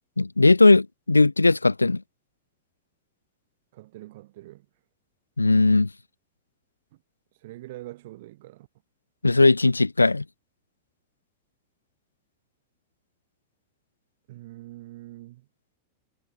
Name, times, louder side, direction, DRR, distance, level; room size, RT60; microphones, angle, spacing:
voice 1, 0.2-2.0 5.4-5.9 9.2-10.2, left 3 dB, 80° left, 0.5 m, -18 dB
voice 2, 3.7-4.7 6.9-7.0 7.4-8.7 14.3-15.5, right 17 dB, 55° right, 4.6 m, -44 dB
figure-of-eight pair, 90°, 0 cm